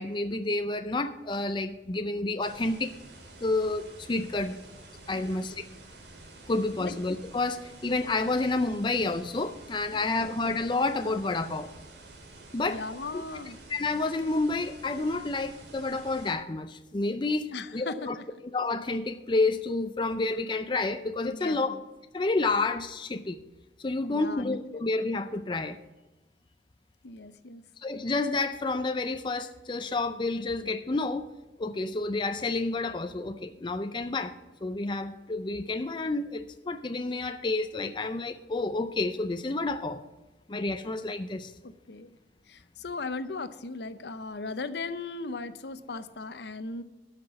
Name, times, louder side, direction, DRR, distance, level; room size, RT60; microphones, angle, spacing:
voice 1, 0.0-2.9 3.4-4.5 5.1-5.6 6.5-11.7 12.5-12.8 13.7-18.2 18.5-21.7 22.1-23.4 23.8-25.8 27.8-31.3 31.6-34.4 34.6-40.0 40.5-41.5, left 3 dB, 25° left, 8 dB, 0.5 m, -29 dB
sound 1, 2.4-16.3, right 2 dB, 75° right, 2.3 m, -49 dB
voice 2, 5.1-5.5 6.8-7.0 9.9-10.3 12.6-13.6 17.5-18.3 21.3-21.8 24.1-24.5 27.0-27.6 41.6-42.2 42.5-46.8, left 3 dB, 65° left, 12 dB, 0.7 m, -38 dB
12.5 x 5.9 x 6.9 m, 1.1 s
head